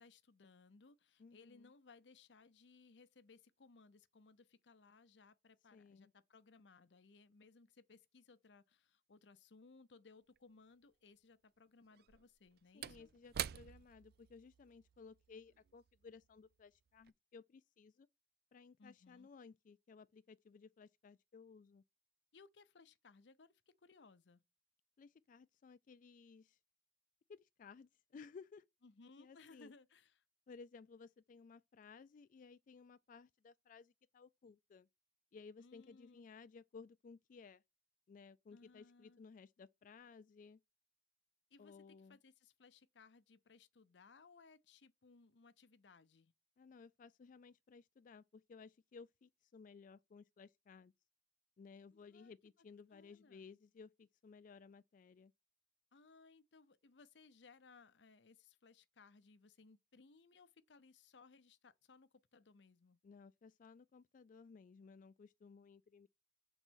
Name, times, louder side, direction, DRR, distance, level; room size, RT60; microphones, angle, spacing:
voice 1, 0.0-13.1 18.8-19.3 22.3-24.4 28.8-30.2 35.6-36.3 38.5-39.2 41.5-46.3 51.9-52.3 52.9-53.5 55.9-63.0, left 4 dB, 85° left, 0.7 m, -64 dB
voice 2, 1.2-1.7 5.7-6.1 12.7-18.1 18.5-21.8 25.0-26.6 27.3-28.6 29.2-29.7 30.5-34.9 35.3-37.6 38.1-40.6 41.6-42.2 46.6-50.9 51.6-55.3 63.0-66.1, left 5 dB, 50° left, 0.3 m, -58 dB
Slam / Wood, 10.4-10.5 11.9-16.6 16.9-17.1, right 10 dB, 60° right, 0.4 m, -48 dB
7.1 x 3.9 x 6.2 m
head